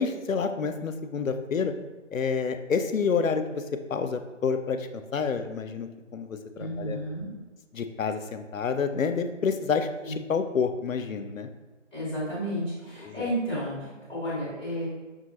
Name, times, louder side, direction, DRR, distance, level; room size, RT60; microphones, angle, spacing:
voice 1, 0.0-1.7 2.1-3.6 3.9-7.0 7.7-11.5 13.0-13.3, left 5 dB, 90° left, 8 dB, 0.5 m, -28 dB
voice 2, 6.5-7.3 10.0-10.1 11.9-14.9, equal, 10° right, -14 dB, 1.2 m, -32 dB
5.5 x 2.2 x 2.9 m, 1.2 s
figure-of-eight pair, 165°, 39 cm